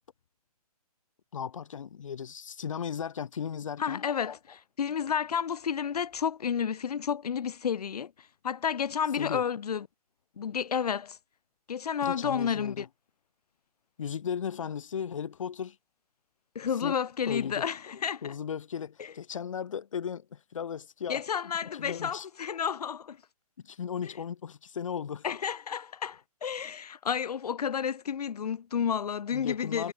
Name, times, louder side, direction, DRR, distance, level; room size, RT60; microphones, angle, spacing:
voice 1, 1.3-4.0 9.1-9.4 12.0-12.9 14.0-15.8 16.8-17.0 17.3-17.7 18.2-22.3 23.6-25.2 29.3-29.9, left 7 dB, 55° left, 1.0 m, -36 dB
voice 2, 3.8-8.1 8.4-9.9 10.4-11.2 11.7-12.9 16.5-18.3 21.1-23.2 25.2-29.9, left 7 dB, 90° left, 0.7 m, -31 dB
hypercardioid pair, 175°, 19 cm